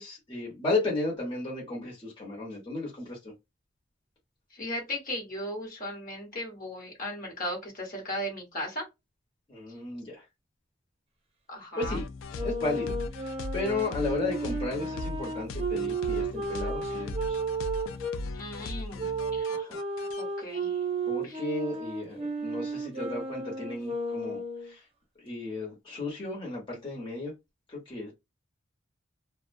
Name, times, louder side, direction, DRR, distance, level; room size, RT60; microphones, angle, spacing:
voice 1, 0.0-3.3 9.5-10.2 11.8-12.0 12.4-17.4 19.5-19.8 21.1-24.8 25.2-27.3 27.7-28.1, left 2 dB, 25° left, 0.9 m, -34 dB
voice 2, 4.5-8.8 11.5-12.0 18.3-19.6 20.2-20.8 21.2-21.4, left 1 dB, 45° left, 1.0 m, -37 dB
sound 1, 11.8-20.2, left 2 dB, 85° left, 0.3 m, -38 dB
Wind instrument woodwind instrument, 12.3-18.2 19.0-24.7, right 3 dB, 30° right, 0.6 m, -33 dB
2.4 x 2.1 x 2.5 m
head